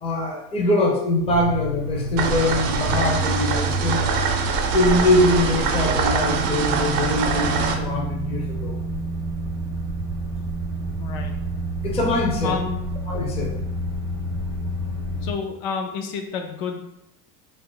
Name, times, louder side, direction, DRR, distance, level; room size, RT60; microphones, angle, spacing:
voice 1, 0.0-4.1 4.7-8.8 11.8-12.6 13.1-13.5, left 1 dB, 15° left, -2 dB, 0.4 m, -22 dB
sound 1, 1.3-15.3, right 1 dB, 55° left, 1.0 m, -29 dB
sound 2, 2.2-7.7, right 5 dB, 85° right, 0.6 m, -24 dB
voice 2, 11.0-11.3 12.4-12.9 15.2-16.8, left 6 dB, 80° left, 4 dB, 0.6 m, -29 dB
2.4 x 2.1 x 3.7 m, 0.83 s
cardioid pair, 140°, 41 cm